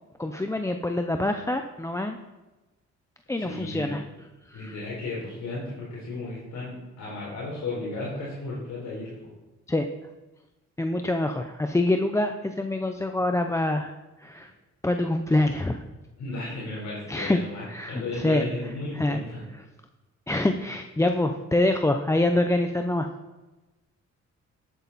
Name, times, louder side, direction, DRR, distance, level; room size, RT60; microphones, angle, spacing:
voice 1, 0.2-2.2 3.3-4.0 4.5-4.7 9.7-9.9 10.8-14.5 14.8-15.8 17.1-17.4 17.7-18.4 18.9-19.2 20.3-23.1, left 1 dB, 10° left, 6 dB, 0.6 m, -25 dB
voice 2, 3.4-3.9 4.5-9.1 14.4-14.5 16.2-19.4, left 2 dB, 65° left, -5 dB, 3.9 m, -34 dB
12.5 x 8.6 x 4.1 m, 1.1 s
cardioid pair, 90°, 30 cm